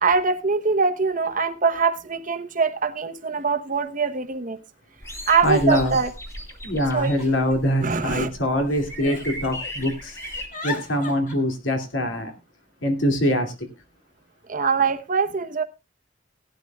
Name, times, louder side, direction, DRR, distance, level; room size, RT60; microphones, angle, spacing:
voice 1, 0.0-4.6 5.3-6.1 6.9-7.1 7.8-8.3 14.5-15.6, right 5 dB, 45° right, 9 dB, 1.0 m, -23 dB
Giggle, 2.6-2.7 3.7-3.8 4.0-4.5 5.2-6.3 6.9-8.2 8.7-9.7 10.0-11.3, left 3 dB, 45° left, 2.9 m, -39 dB
sound 1, 5.0-10.5, equal, 15° left, 1.8 m, -37 dB
voice 2, 5.4-6.0 6.6-10.2 10.6-12.3 12.8-13.5, equal, 75° left, 4 dB, 2.6 m, -23 dB
17.5 x 11.5 x 2.4 m, 0.26 s
head